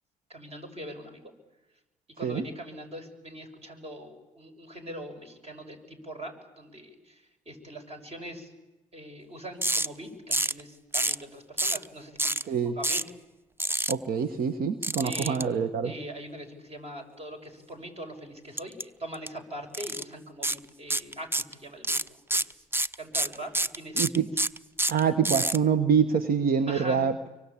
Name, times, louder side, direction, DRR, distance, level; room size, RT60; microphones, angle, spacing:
voice 1, 0.3-1.2 2.2-8.5 8.9-13.0 15.0-15.4 15.8-22.6 23.0-24.1 26.7-27.1, right 1 dB, 35° right, 5 dB, 6.4 m, -42 dB
sound 1, 9.6-9.9 10.3-10.6 10.9-11.2 11.6-11.9 12.2-12.4 12.8-13.1 13.6-13.9 14.8-15.4 18.6-18.8 19.1-19.3 19.7-20.0 20.4-20.6 20.9-21.5 21.8-25.6, right 1 dB, 15° right, 0.8 m, -27 dB
voice 2, 13.9-15.9 23.9-24.3 24.9-27.1, right 7 dB, 60° right, 11 dB, 1.4 m, -25 dB
25.0 x 24.0 x 8.6 m, 1.1 s
hypercardioid pair, 55°, 17 cm